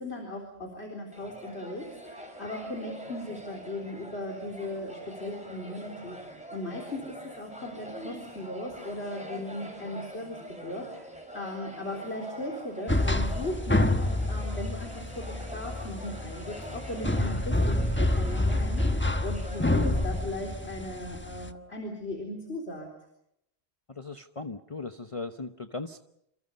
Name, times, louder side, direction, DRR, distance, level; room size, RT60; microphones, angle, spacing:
voice 1, 0.0-22.9, left 1 dB, 75° left, 1 dB, 4.4 m, -38 dB
sound 1, 1.1-20.2, equal, 5° right, 6.0 m, -45 dB
sound 2, 12.9-21.5, left 1 dB, 10° left, 1.1 m, -28 dB
voice 2, 23.9-26.0, left 3 dB, 30° left, 7 dB, 1.0 m, -38 dB
28.0 x 27.0 x 5.4 m, 0.76 s
omnidirectional pair, 1.1 m